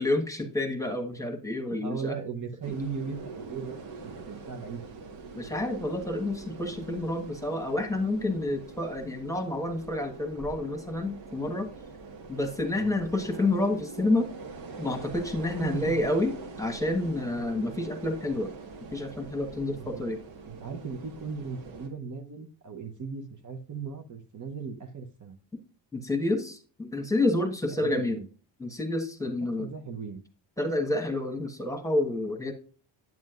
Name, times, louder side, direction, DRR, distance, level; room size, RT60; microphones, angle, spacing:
voice 1, 0.0-2.2 5.3-11.7 12.3-14.3 14.8-18.5 18.9-20.2 25.9-28.2 28.6-29.7 30.6-32.5, left 2 dB, 5° left, 4 dB, 1.3 m, -29 dB
voice 2, 1.7-4.9 12.7-12.9 15.6-16.1 19.7-20.0 20.4-25.4 27.7-28.3 29.4-30.2, right 5 dB, 40° right, 4 dB, 0.9 m, -37 dB
sound 1, 2.6-21.9, right 4 dB, 80° right, 1.8 m, -43 dB
9.3 x 7.4 x 2.4 m, 0.40 s
cardioid pair, 105°, 46 cm